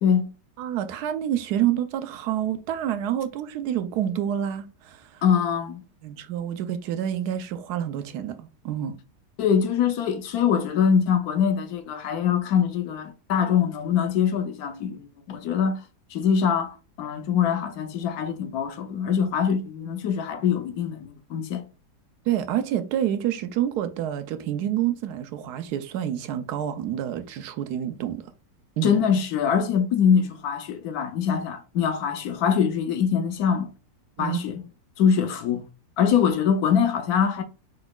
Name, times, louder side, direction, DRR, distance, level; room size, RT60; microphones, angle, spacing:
voice 1, 0.6-5.2 6.0-9.0 22.3-28.2 28.8-29.0 34.2-34.4, right 10 dB, 75° right, 1.0 m, -28 dB
voice 2, 5.2-5.8 9.4-15.8 16.1-21.7 28.8-33.7 34.2-34.6 35.0-35.6 36.0-37.4, left 7 dB, 65° left, 1.0 m, -23 dB
4.8 x 4.1 x 2.3 m
omnidirectional pair, 2.0 m